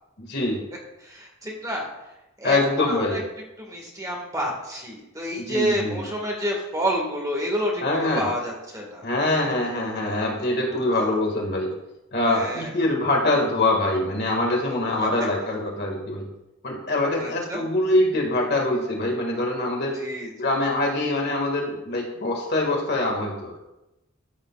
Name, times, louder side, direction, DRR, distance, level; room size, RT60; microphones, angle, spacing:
voice 1, 0.2-0.6 2.4-3.2 5.5-6.0 7.8-8.3 9.0-11.7 12.1-16.3 16.6-20.0 20.4-23.6, left 2 dB, 55° left, 0 dB, 1.9 m, -24 dB
voice 2, 1.0-1.9 2.4-2.6 2.9-3.2 3.6-9.1 10.9-11.1 12.3-12.7 17.2-17.6 20.0-20.3, equal, 15° right, -1 dB, 1.8 m, -29 dB
13.5 x 6.7 x 2.4 m, 0.94 s
head